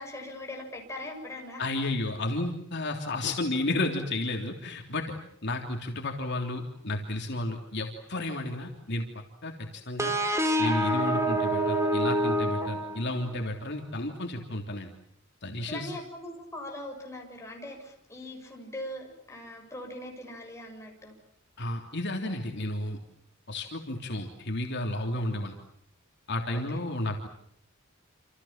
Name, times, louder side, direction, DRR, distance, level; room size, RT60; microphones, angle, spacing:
voice 1, 0.0-1.6 15.7-21.1 26.5-26.8, left 1 dB, 15° left, 1 dB, 7.0 m, -41 dB
voice 2, 1.6-9.1 9.4-10.1 10.6-14.9 15.4-15.9 21.6-23.0 23.5-25.5 26.3-27.3, left 2 dB, 55° left, 2 dB, 3.3 m, -32 dB
sound 1, 10.0-13.5, right 1 dB, 15° right, 3.0 m, -27 dB
28.0 x 28.0 x 7.4 m, 0.71 s
head